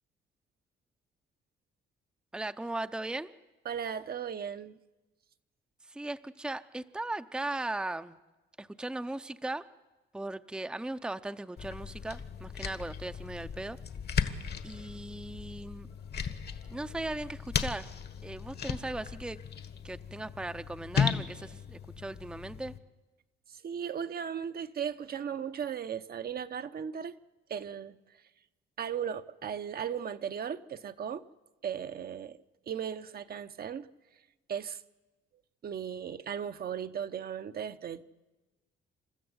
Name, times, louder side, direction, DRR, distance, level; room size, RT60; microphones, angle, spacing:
voice 1, 2.3-3.3 5.9-8.2 8.6-9.6 10.1-13.8 14.6-15.9 16.7-17.9 18.2-19.4 19.8-22.7, right 2 dB, 5° right, 0.6 m, -38 dB
voice 2, 3.6-4.8 23.6-27.1 27.5-28.0 28.8-31.2 31.6-32.4 32.7-33.9 34.5-34.8 35.6-38.0, right 8 dB, 50° right, 0.8 m, -36 dB
sound 1, 11.6-22.8, left 7 dB, 55° left, 1.5 m, -36 dB
29.0 x 13.0 x 8.0 m
cardioid pair, 90°, 20 cm